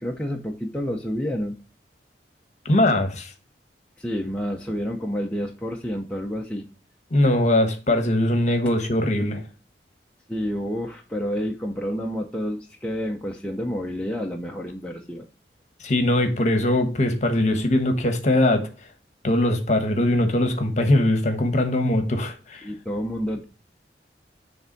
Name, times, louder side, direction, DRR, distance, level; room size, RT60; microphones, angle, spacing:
voice 1, 0.0-1.6 4.0-6.6 10.3-15.2 22.6-23.4, equal, 5° left, 0.7 m, -29 dB
voice 2, 2.6-3.3 7.1-9.4 15.8-18.7 19.2-22.7, left 1 dB, 40° left, 1.1 m, -21 dB
6.9 x 3.5 x 5.2 m
head